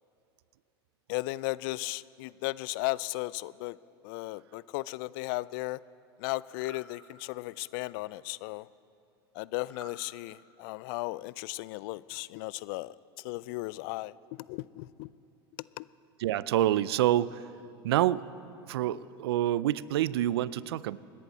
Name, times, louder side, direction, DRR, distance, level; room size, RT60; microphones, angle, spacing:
voice 1, 1.1-3.8 4.0-5.8 6.2-8.7 9.3-15.1 15.8-15.9, left 20 dB, 65° left, 20 dB, 0.4 m, -36 dB
sound 1, 6.5-6.9 9.6-10.0, left 2 dB, 15° left, 1.9 m, -50 dB
voice 2, 16.2-17.4 17.8-18.3 18.7-21.0, right 13 dB, 80° right, 19 dB, 0.4 m, -27 dB
26.0 x 10.5 x 4.2 m, 2.8 s
hypercardioid pair, 100°, 13 cm